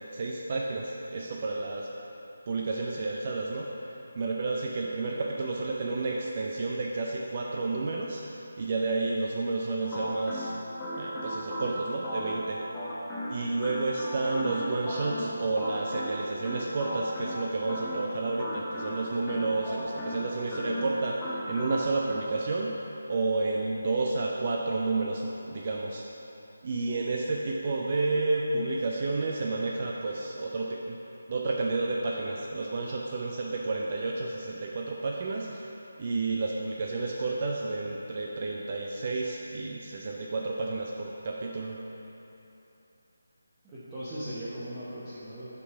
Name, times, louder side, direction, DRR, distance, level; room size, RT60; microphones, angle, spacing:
voice 1, 0.1-1.9 2.5-3.7 4.2-10.5 11.0-12.6 13.3-21.2 21.5-22.7 23.1-26.1 26.6-31.0 31.3-35.7 36.0-41.8, right 3 dB, 35° right, -1 dB, 0.4 m, -31 dB
sound 1, 9.8-22.2, equal, 10° left, 0.8 m, -36 dB
voice 2, 43.6-45.5, equal, 15° right, -12 dB, 0.9 m, -38 dB
6.7 x 4.5 x 5.7 m, 3.0 s
figure-of-eight pair, 155°, 0 cm